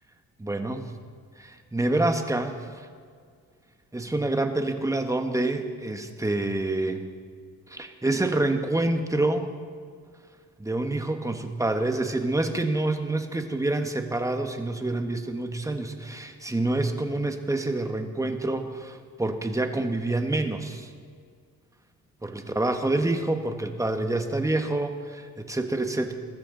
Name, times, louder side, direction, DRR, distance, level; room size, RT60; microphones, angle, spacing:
voice 1, 0.4-0.9 1.4-2.9 3.9-7.0 7.7-9.5 10.6-20.9 22.2-26.1, right 2 dB, 10° right, 6 dB, 1.3 m, -27 dB
20.5 x 13.0 x 3.9 m, 2.1 s
cardioid pair, 90°, 30 cm